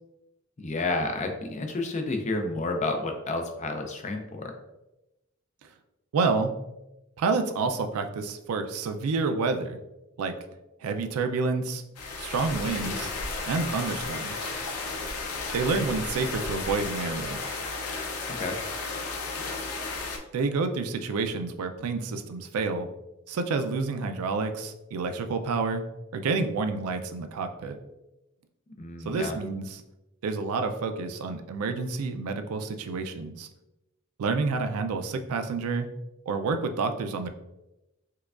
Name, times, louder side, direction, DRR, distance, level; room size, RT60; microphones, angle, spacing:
voice 1, 0.6-4.5 18.3-18.6 28.8-29.4, left 2 dB, 35° left, 4 dB, 0.4 m, -30 dB
voice 2, 6.1-6.5 7.2-9.8 10.2-10.3 10.8-11.8 12.2-13.1 13.5-14.5 15.5-17.4 20.3-22.9 23.3-25.8 26.1-27.8 29.1-29.8 30.2-33.5 34.2-35.9 36.3-37.3, right 4 dB, 80° right, 7 dB, 0.4 m, -29 dB
sound 1, 11.9-20.2, left 3 dB, 90° left, 0.5 m, -33 dB
4.7 x 2.2 x 2.3 m, 0.95 s
head